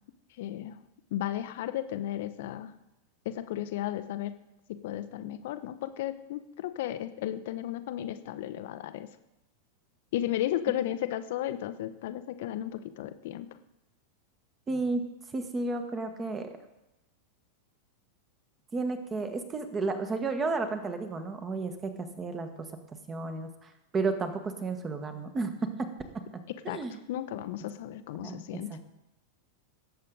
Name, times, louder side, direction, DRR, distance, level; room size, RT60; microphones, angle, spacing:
voice 1, 0.4-0.8 1.1-2.7 3.2-4.4 4.7-9.1 10.1-13.5 26.7-26.8 27.1-28.7, left 12 dB, 55° left, 12 dB, 0.8 m, -34 dB
voice 2, 14.7-15.0 15.3-16.5 18.7-22.5 23.1-25.9 26.1-27.0 28.2-28.8, right 3 dB, 20° right, 7 dB, 1.5 m, -32 dB
18.5 x 7.8 x 3.9 m, 0.92 s
figure-of-eight pair, 90°, 0 cm